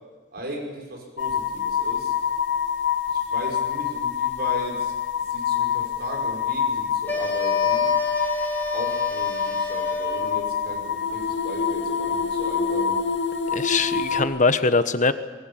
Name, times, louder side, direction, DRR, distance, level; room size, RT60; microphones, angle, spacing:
voice 1, 0.3-2.1 3.1-4.9 5.3-7.9 8.7-13.0, right 1 dB, 55° right, 3 dB, 6.0 m, -36 dB
sound 1, 1.2-14.2, left 7 dB, 75° left, 2.5 m, -26 dB
sound 2, 7.1-10.6, left 4 dB, 10° left, 4.3 m, -28 dB
voice 2, 13.5-15.1, left 4 dB, 40° left, 11 dB, 1.3 m, -21 dB
23.0 x 22.5 x 8.9 m, 1.4 s
head